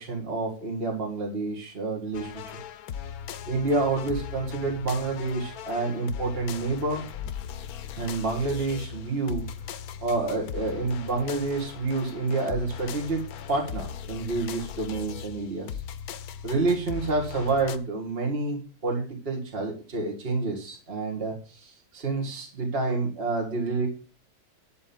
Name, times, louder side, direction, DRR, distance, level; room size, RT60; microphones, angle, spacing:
voice 1, 0.0-2.3 3.5-7.0 8.0-9.5 10.0-13.2 13.5-15.7 16.4-23.9, right 3 dB, 40° right, -1 dB, 2.2 m, -28 dB
sound 1, 2.1-17.8, left 8 dB, 80° left, 1.2 m, -38 dB
11.5 x 3.9 x 7.0 m, 0.37 s
omnidirectional pair, 1.6 m